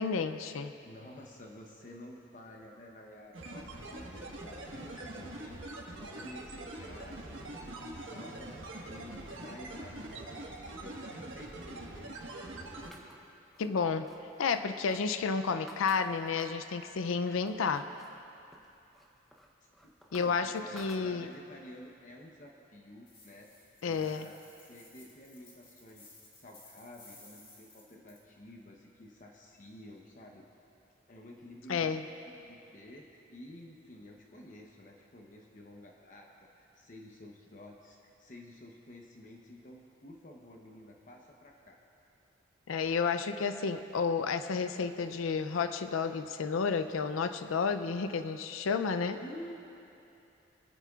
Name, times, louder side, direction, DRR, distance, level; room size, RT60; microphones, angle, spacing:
voice 1, 0.0-0.7 13.6-14.1 14.4-17.9 20.1-21.3 23.8-24.3 31.7-32.0 42.7-49.2, left 5 dB, 85° left, 10 dB, 0.4 m, -31 dB
voice 2, 0.8-12.5 19.8-23.5 23.9-24.3 24.7-30.5 31.1-32.0 32.2-36.3 36.6-41.8 49.1-49.5, left 1 dB, 40° left, 0 dB, 0.8 m, -51 dB
sound 1, 3.3-12.9, right 1 dB, 70° right, 1.4 m, -44 dB
sound 2, 12.8-16.7 17.1-18.2 18.5-21.5, right 1 dB, ahead, 0.7 m, -55 dB
sound 3, 23.1-28.2, left 2 dB, 25° left, 1.7 m, -58 dB
24.0 x 10.0 x 2.4 m, 2.7 s
head